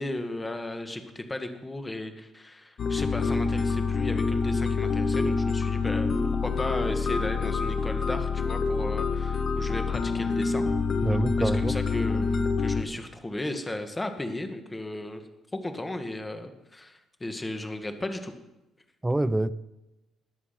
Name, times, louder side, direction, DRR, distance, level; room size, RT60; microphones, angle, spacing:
voice 1, 0.0-6.1 6.4-10.7 11.4-15.2 15.5-18.3, left 1 dB, 15° left, 1.7 m, -35 dB
sound 1, 2.8-12.8, left 4 dB, 45° left, 1.4 m, -26 dB
voice 2, 11.0-11.8 19.0-19.5, right 2 dB, 10° right, 0.6 m, -26 dB
21.0 x 7.4 x 5.8 m
cardioid pair, 110°, 0 cm